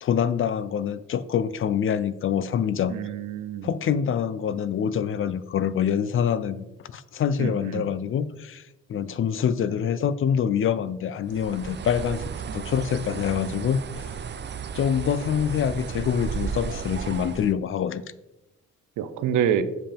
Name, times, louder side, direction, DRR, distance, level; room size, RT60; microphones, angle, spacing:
voice 1, 0.0-2.9 3.6-8.6 8.9-12.2 12.5-13.8 14.7-18.0, left 8 dB, 45° left, 15 dB, 0.4 m, -25 dB
voice 2, 2.9-3.7 7.4-7.9 19.0-19.6, right 9 dB, 80° right, 11 dB, 0.7 m, -27 dB
Bird, 11.3-17.5, right 6 dB, 35° right, 0.5 m, -34 dB
7.0 x 5.6 x 3.4 m, 0.98 s
cardioid pair, 90°, 30 cm